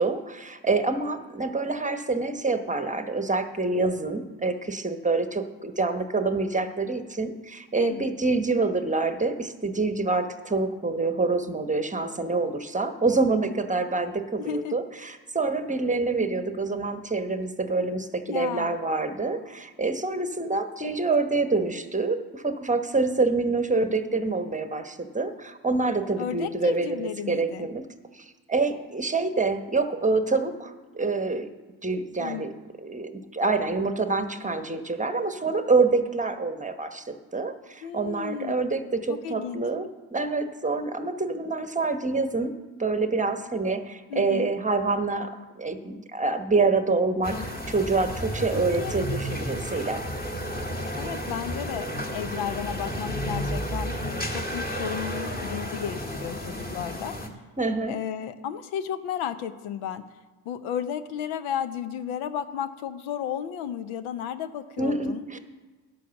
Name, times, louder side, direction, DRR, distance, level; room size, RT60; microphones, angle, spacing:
voice 1, 0.0-27.9 28.1-31.5 31.8-32.5 32.8-50.0 57.6-58.0 64.8-65.4, right 3 dB, 15° right, 8 dB, 1.0 m, -26 dB
voice 2, 7.8-8.1 14.4-14.8 18.3-18.8 26.2-27.7 32.2-32.4 37.8-38.6 39.1-39.6 44.1-44.5 48.5-48.9 51.0-57.2 57.9-60.0 60.4-65.2, left 9 dB, 75° left, 12 dB, 0.8 m, -33 dB
sound 1, 47.2-57.3, equal, 20° left, 1.8 m, -32 dB
11.0 x 6.3 x 7.0 m, 1.3 s
hypercardioid pair, 60°, 48 cm